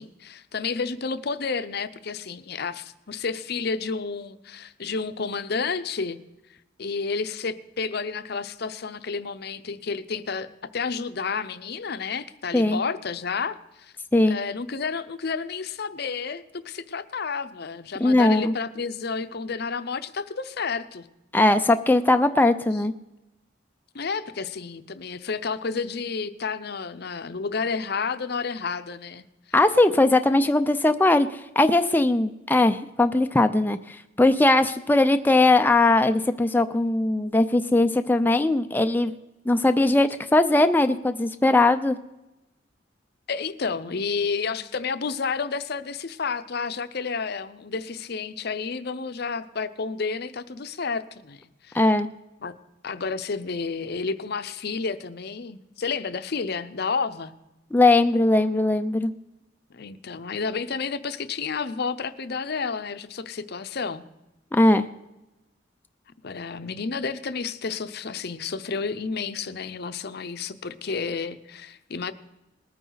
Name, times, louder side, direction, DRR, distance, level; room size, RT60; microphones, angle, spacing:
voice 1, 0.0-6.2 6.8-13.9 14.3-21.0 23.9-29.2 43.3-51.9 52.4-52.5 52.8-57.3 59.7-64.0 66.2-72.1, left 5 dB, 55° left, 12 dB, 0.6 m, -31 dB
voice 2, 18.0-18.5 21.3-22.9 29.5-39.1 39.5-42.0 51.7-52.1 57.7-59.1 64.5-64.9, left 2 dB, 10° left, 8 dB, 0.4 m, -20 dB
20.0 x 9.2 x 3.9 m, 0.97 s
head